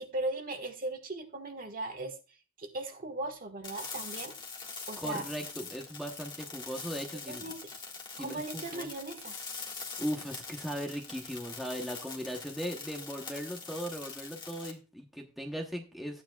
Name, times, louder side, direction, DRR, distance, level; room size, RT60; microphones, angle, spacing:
voice 1, 0.0-2.1 2.6-4.3 4.9-5.3 7.3-7.6 8.2-9.4, right 2 dB, 40° right, 5 dB, 1.5 m, -38 dB
sound 1, 3.6-14.7, left 4 dB, 20° left, 1.7 m, -43 dB
voice 2, 5.0-7.4 8.1-8.9 10.0-16.2, equal, ahead, 1 dB, 1.0 m, -38 dB
13.5 x 9.4 x 2.3 m, 0.33 s
head